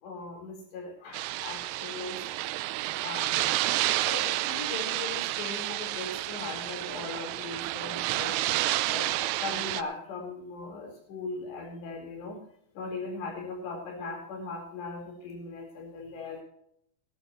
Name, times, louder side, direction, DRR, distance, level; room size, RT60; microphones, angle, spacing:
voice 1, 0.0-2.2 3.0-3.6 4.1-8.4 8.9-12.4 12.7-16.4, left 3 dB, 85° left, 1 dB, 6.5 m, -39 dB
sound 1, 1.1-9.8, right 16 dB, 85° right, 2.6 m, -30 dB
19.0 x 12.0 x 3.1 m, 0.70 s
omnidirectional pair, 4.8 m